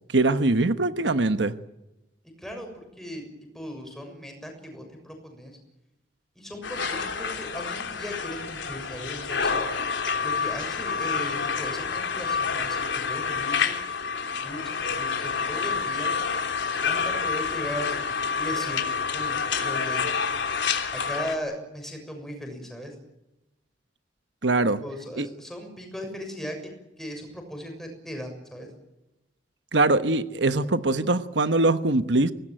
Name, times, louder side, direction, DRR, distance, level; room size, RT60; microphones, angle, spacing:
voice 1, 0.1-1.5 24.4-24.8 25.2-25.3 29.7-32.3, right 2 dB, 75° right, 10 dB, 1.2 m, -22 dB
voice 2, 2.2-3.3 3.5-5.6 6.3-9.7 10.2-13.8 14.4-16.1 16.8-18.0 18.4-18.9 19.1-20.0 20.9-22.9 24.8-26.6 27.0-28.7, equal, ahead, 3 dB, 6.7 m, -37 dB
sound 1, 6.6-21.4, left 5 dB, 85° left, 3.3 m, -28 dB
24.5 x 19.0 x 9.2 m, 0.94 s
head